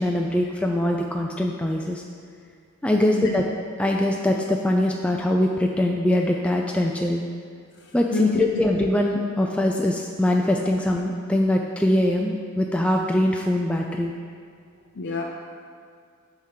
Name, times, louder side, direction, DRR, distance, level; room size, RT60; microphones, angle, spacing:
voice 1, 0.0-2.0 2.8-3.4 3.8-7.2 7.9-14.1, left 1 dB, 5° left, 0 dB, 0.3 m, -22 dB
voice 2, 2.9-3.3 8.1-8.6 15.0-15.2, left 4 dB, 55° left, -1 dB, 0.6 m, -27 dB
9.4 x 3.6 x 5.7 m, 2.1 s
head